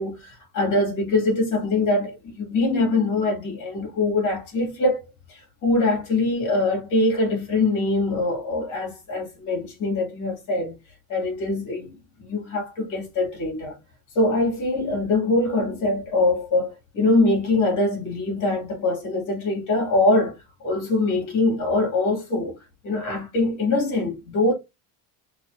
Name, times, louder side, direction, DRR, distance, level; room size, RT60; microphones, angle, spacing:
voice 1, 0.0-5.0 5.3-10.8 11.1-13.8 14.1-20.4 20.6-22.6 22.8-24.5, left 2 dB, 45° left, 2.5 m, -23 dB
6.6 x 2.6 x 2.7 m
cardioid pair, 160°, 43 cm